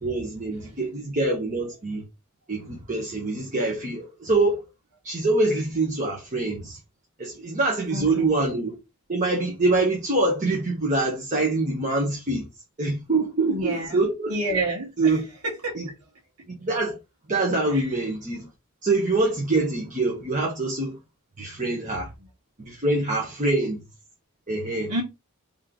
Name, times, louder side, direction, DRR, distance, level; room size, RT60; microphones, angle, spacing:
voice 1, 0.0-2.0 2.5-4.6 5.0-6.8 7.2-8.7 9.1-12.5 12.8-14.3 15.0-15.2 15.7-15.9 16.5-17.0 17.3-18.5 18.8-21.0 21.4-22.1 22.6-23.8 24.5-24.9, right 2 dB, 35° right, 1.1 m, -25 dB
voice 2, 7.9-8.3 13.5-14.0 14.3-15.1 15.4-15.7 17.7-17.9 24.9-25.0, right 1 dB, 90° right, 2.0 m, -28 dB
3.6 x 3.1 x 3.8 m
head